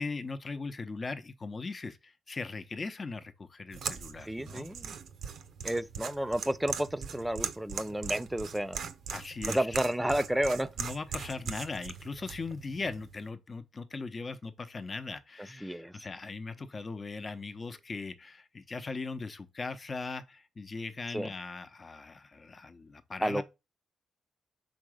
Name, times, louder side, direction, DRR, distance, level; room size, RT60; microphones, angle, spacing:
voice 1, 0.0-4.7 9.1-9.7 10.8-23.4, left 4 dB, 40° left, 0.8 m, -39 dB
sound 1, 3.7-13.3, right 7 dB, 70° right, 0.6 m, -40 dB
voice 2, 4.3-5.0 5.6-8.8 9.5-10.7 15.6-15.9 21.1-21.3 23.2-23.4, right 1 dB, 5° right, 0.6 m, -31 dB
5.1 x 3.9 x 5.0 m
supercardioid pair, 50°, 0 cm